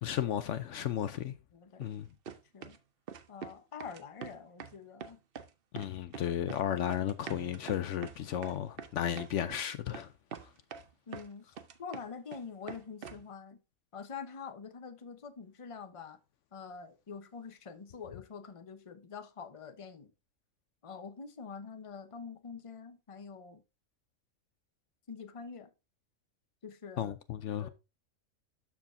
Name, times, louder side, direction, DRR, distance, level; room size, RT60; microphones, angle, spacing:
voice 1, 0.0-1.3 1.8-2.1 5.7-10.1 10.4-10.5 27.0-27.7, left 10 dB, 70° left, 0.9 m, -34 dB
voice 2, 1.5-1.8 2.5-2.8 3.3-5.2 5.8-5.9 6.3-6.4 11.1-11.4 11.8-13.6 13.9-16.2 16.5-20.1 20.8-23.6 25.1-25.7 26.6-27.1 27.6-27.7, left 6 dB, 30° left, 0.8 m, -45 dB
sound 1, 1.8-1.9 2.2-2.8 3.1-3.5 3.8-4.7 5.0-5.5 5.8-6.6 6.9-9.6 9.9-10.0 10.3-11.3 11.6-12.4 12.7-13.2, right 7 dB, 50° right, 0.8 m, -44 dB
12.5 x 4.9 x 2.6 m
omnidirectional pair, 1.3 m